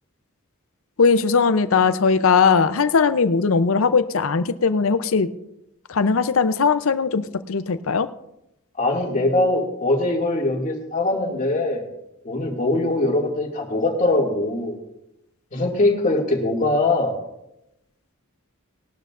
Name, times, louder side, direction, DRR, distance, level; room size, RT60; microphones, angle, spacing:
voice 1, 1.0-5.3 5.9-8.1, left 5 dB, 65° left, 12 dB, 0.6 m, -19 dB
voice 2, 8.8-11.9 12.2-14.8 15.5-17.1, left 2 dB, 35° left, 0 dB, 2.3 m, -22 dB
20.0 x 12.0 x 2.5 m, 0.86 s
head